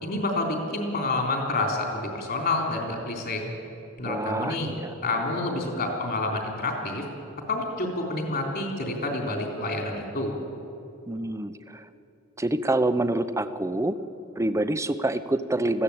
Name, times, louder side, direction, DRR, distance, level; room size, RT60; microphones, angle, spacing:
voice 1, 0.0-3.5 4.0-4.7 5.0-7.1 7.5-10.3, left 2 dB, 45° left, 2 dB, 3.7 m, -28 dB
voice 2, 4.0-4.9 11.1-11.9 12.4-14.0 14.4-15.8, right 2 dB, 15° right, 11 dB, 0.7 m, -27 dB
20.0 x 15.0 x 8.7 m, 2.8 s
head